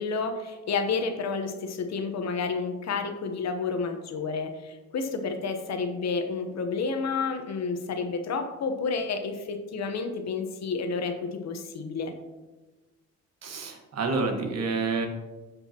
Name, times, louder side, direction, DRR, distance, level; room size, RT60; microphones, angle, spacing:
voice 1, 0.0-12.1, left 4 dB, 60° left, 6 dB, 1.1 m, -30 dB
voice 2, 13.4-15.1, right 4 dB, 60° right, 4 dB, 1.5 m, -28 dB
15.0 x 5.4 x 3.0 m, 1.2 s
cardioid pair, 90°, 30 cm